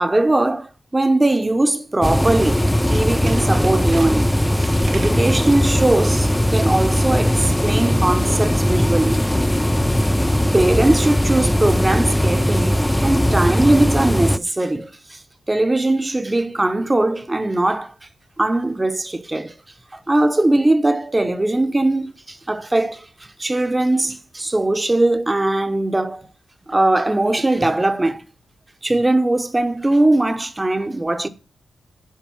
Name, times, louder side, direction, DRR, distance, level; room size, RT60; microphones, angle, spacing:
voice 1, 0.0-9.2 10.5-15.2 15.5-17.9 18.4-19.5 19.9-26.3 26.7-28.2 28.8-31.3, right 2 dB, 15° right, 0.8 m, -20 dB
sound 1, 2.0-14.4, equal, 5° left, 0.3 m, -19 dB
Tools, 2.5-5.3 5.8-6.1 6.3-6.4, right 5 dB, 75° right, 1.2 m, -41 dB
7.4 x 5.1 x 7.0 m
wide cardioid pair, 115°, 0 cm